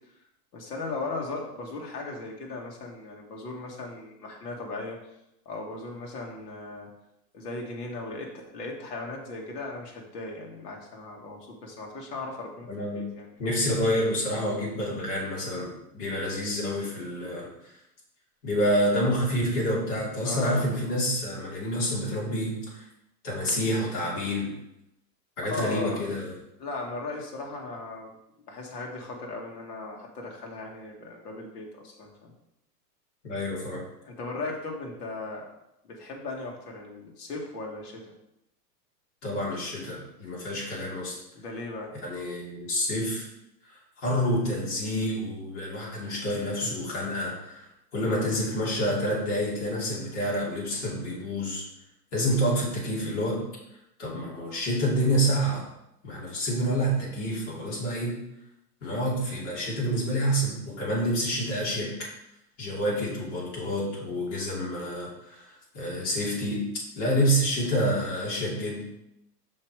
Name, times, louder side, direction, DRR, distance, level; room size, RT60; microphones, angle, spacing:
voice 1, 0.5-5.0 5.5-6.9 7.3-13.3 20.2-20.7 25.5-26.0 26.6-28.2 28.5-32.3 34.0-35.5 35.8-38.1 41.3-41.9, left 3 dB, 75° left, 0 dB, 2.0 m, -37 dB
voice 2, 12.7-13.1 13.4-17.5 18.4-22.8 23.2-24.5 25.4-26.3 33.2-33.8 39.2-41.2 42.0-43.3 44.0-51.6 52.1-53.4 54.0-55.6 56.0-58.2 58.8-61.9 62.6-66.7 67.0-68.8, equal, 45° left, -4 dB, 2.7 m, -28 dB
5.6 x 4.9 x 4.8 m, 0.84 s
supercardioid pair, 170°, 49 cm